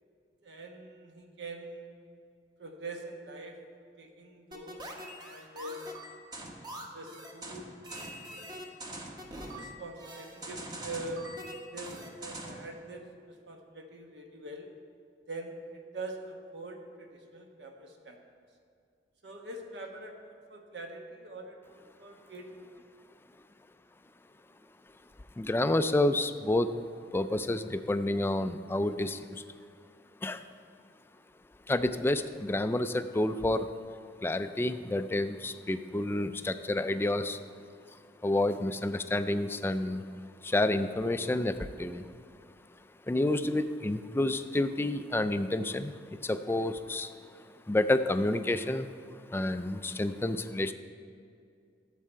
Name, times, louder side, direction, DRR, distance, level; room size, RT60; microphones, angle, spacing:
voice 1, 0.4-1.9 2.6-3.6 4.0-4.9 5.2-5.8 6.7-8.1 9.5-11.2 11.7-14.7 15.3-18.2 19.2-22.5, right 2 dB, 70° right, 3 dB, 1.2 m, -44 dB
sound 1, 4.5-12.7, right 1 dB, 25° right, 1.0 m, -43 dB
voice 2, 25.4-26.7 27.1-29.4 30.2-30.4 31.7-33.7 34.2-37.4 38.2-40.0 40.4-42.1 43.1-47.1 47.7-48.9 49.3-50.7, left 1 dB, 15° left, 10 dB, 0.3 m, -29 dB
13.0 x 7.6 x 4.5 m, 2.4 s
head